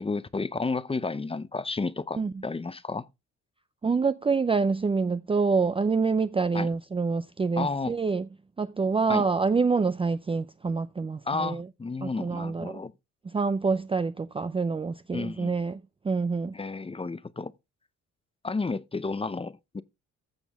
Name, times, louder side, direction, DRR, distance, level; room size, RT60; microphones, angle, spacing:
voice 1, 0.0-3.0 6.5-6.7 7.6-7.9 9.1-9.2 11.2-12.9 15.1-15.5 16.5-17.5 18.4-19.8, left 3 dB, 20° left, 0.7 m, -32 dB
voice 2, 3.8-8.3 8.6-11.7 12.0-12.8 13.3-16.5, right 4 dB, 20° right, 0.5 m, -26 dB
14.5 x 6.2 x 3.5 m
cardioid pair, 90°, 30 cm